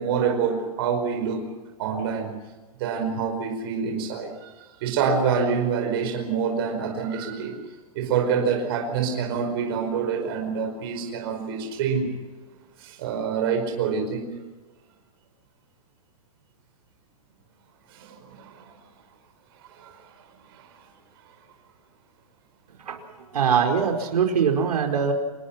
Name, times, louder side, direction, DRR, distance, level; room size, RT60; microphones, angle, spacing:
voice 1, 0.0-1.5 1.8-2.4 2.8-4.5 4.8-7.6 7.9-12.1 12.8-14.3 17.9-18.7 19.7-20.1 20.5-20.7, right 6 dB, 40° right, 3 dB, 5.1 m, -26 dB
voice 2, 23.3-25.1, right 7 dB, 80° right, 3 dB, 5.0 m, -22 dB
27.5 x 21.0 x 6.0 m, 1.2 s
hypercardioid pair, 170°, 20 cm